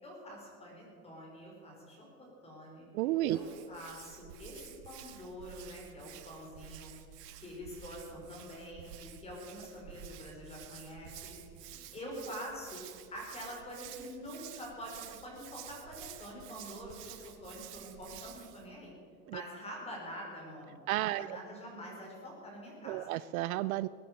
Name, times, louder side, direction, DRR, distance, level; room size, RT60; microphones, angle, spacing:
voice 1, 0.0-6.9 7.4-11.3 11.7-12.8 13.1-17.2 17.4-18.9 19.3-23.2, equal, 15° left, -1 dB, 4.5 m, -46 dB
voice 2, 2.9-3.4 19.3-19.4 20.9-21.4 22.8-23.9, right 16 dB, 65° right, 16 dB, 0.5 m, -32 dB
Hands, 3.2-18.7, right 10 dB, 80° right, 1.9 m, -51 dB
21.0 x 9.4 x 6.4 m, 2.4 s
supercardioid pair, 165°, 47 cm